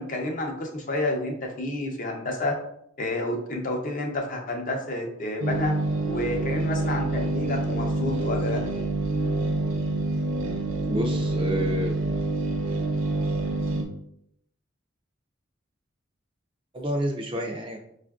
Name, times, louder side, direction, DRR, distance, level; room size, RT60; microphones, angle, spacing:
voice 1, 0.0-2.5 3.0-5.7 6.1-8.6, left 2 dB, 40° left, 1 dB, 0.6 m, -30 dB
sound 1, 5.4-13.8, right 2 dB, 85° right, 0.6 m, -27 dB
voice 2, 10.8-12.0 16.7-17.8, equal, 25° right, 2 dB, 0.4 m, -29 dB
5.1 x 2.4 x 2.3 m, 0.72 s
head